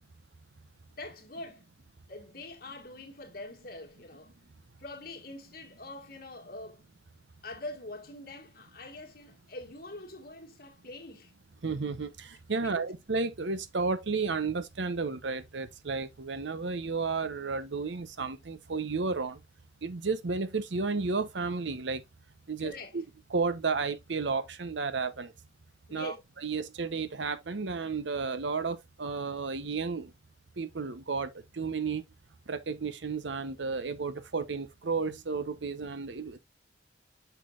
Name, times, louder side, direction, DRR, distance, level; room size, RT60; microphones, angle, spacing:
voice 1, 1.0-1.7 2.1-4.3 4.8-6.8 7.4-11.3 12.6-12.9 22.6-23.0 25.9-26.2, left 2 dB, 55° left, 1.7 m, -44 dB
voice 2, 11.6-19.4 19.8-22.0 22.5-23.0 23.3-25.3 25.9-26.1 26.4-30.1 30.6-32.0 32.5-36.4, right 4 dB, 85° right, 0.8 m, -32 dB
6.8 x 6.2 x 2.4 m
head